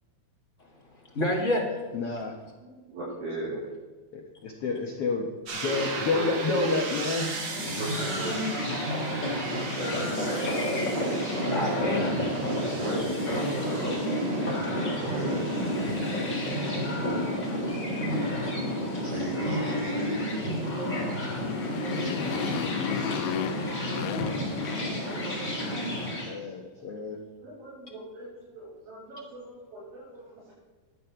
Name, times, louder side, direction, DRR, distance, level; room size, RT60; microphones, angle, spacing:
voice 1, 1.1-1.7 1.9-2.0 11.4-12.8 14.7-15.0 17.5-19.1 21.0-26.3, left 1 dB, 45° left, -2 dB, 1.0 m, -36 dB
voice 2, 1.9-2.3 4.1-5.2 5.5-7.3 26.3-27.2, left 3 dB, 70° left, 1 dB, 1.3 m, -29 dB
voice 3, 2.6-3.6 5.6-6.8 7.6-8.4 9.7-10.9 12.7-14.2 15.0-15.5 19.0-20.6 26.1-26.3 27.4-30.5, right 1 dB, 80° right, -9 dB, 6.7 m, -36 dB
sound 1, 5.5-17.1, right 4 dB, 50° right, 1.8 m, -39 dB
sound 2, 7.3-26.3, equal, 25° left, 3.4 m, -30 dB
Motorcycle, 21.1-25.6, left 10 dB, 90° left, 2.4 m, -35 dB
11.5 x 9.2 x 5.7 m, 1.3 s
omnidirectional pair, 4.2 m